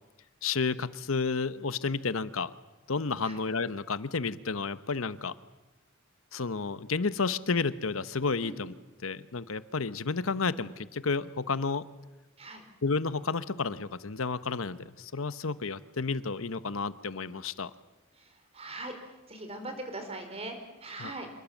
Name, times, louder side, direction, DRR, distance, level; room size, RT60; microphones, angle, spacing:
voice 1, 0.4-2.5 2.9-5.3 6.3-8.7 9.0-11.8 12.8-17.7 21.0-21.1, left 4 dB, 75° left, 15 dB, 0.9 m, -31 dB
voice 2, 18.1-21.3, right 2 dB, 30° right, 6 dB, 4.1 m, -41 dB
27.0 x 21.0 x 7.3 m, 1.1 s
head